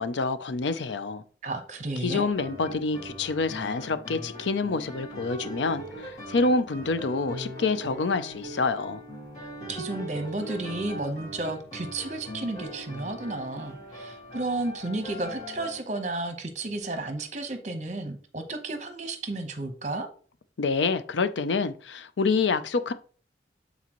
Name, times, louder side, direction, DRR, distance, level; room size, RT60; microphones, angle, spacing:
voice 1, 0.0-1.2 2.0-9.0 20.6-22.9, left 4 dB, 90° left, 0.5 m, -27 dB
voice 2, 1.4-2.2 9.4-20.1, right 2 dB, 40° right, 0.9 m, -32 dB
sound 1, 2.1-15.8, equal, 40° left, 2.8 m, -40 dB
8.3 x 4.0 x 3.0 m
head